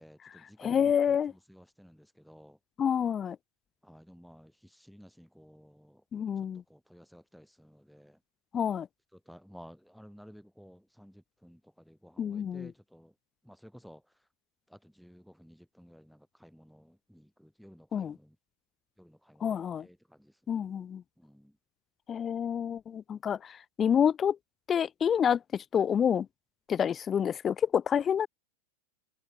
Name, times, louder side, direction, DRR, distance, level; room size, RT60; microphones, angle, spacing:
voice 1, 0.0-2.6 3.8-6.0 6.7-8.2 9.1-13.1 13.5-14.0 14.7-18.4 19.0-20.7 21.2-21.5, equal, ahead, 1.8 m, -55 dB
voice 2, 0.6-1.3 2.8-3.4 6.1-6.6 8.5-8.9 12.2-12.7 17.9-18.2 19.4-19.8 20.5-21.0 22.1-24.4 24.7-26.3 26.7-28.3, left 8 dB, 25° left, 0.9 m, -28 dB
figure-of-eight pair, 90°, 0 cm